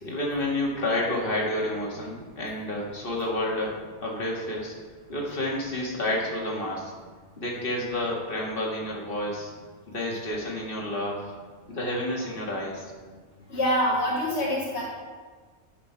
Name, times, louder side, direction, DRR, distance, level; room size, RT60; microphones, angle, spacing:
voice 1, 0.0-4.7 5.1-6.9 7.4-9.5 9.9-11.3 11.7-12.8, left 1 dB, 50° left, -3 dB, 2.1 m, -30 dB
voice 2, 13.5-14.8, equal, 65° left, -5 dB, 1.6 m, -25 dB
11.0 x 6.2 x 4.6 m, 1.5 s
omnidirectional pair, 1.2 m